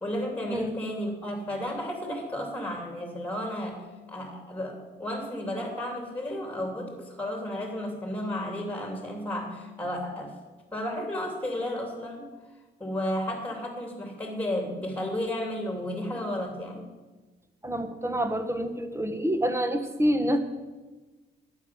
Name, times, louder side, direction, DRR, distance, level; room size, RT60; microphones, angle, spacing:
voice 1, 0.0-10.4 10.7-12.3 12.8-16.8, left 1 dB, 5° left, 2 dB, 2.9 m, -33 dB
voice 2, 17.6-20.4, equal, 15° right, 7 dB, 1.4 m, -27 dB
12.0 x 9.0 x 6.1 m, 1.2 s
cardioid pair, 90°, 20 cm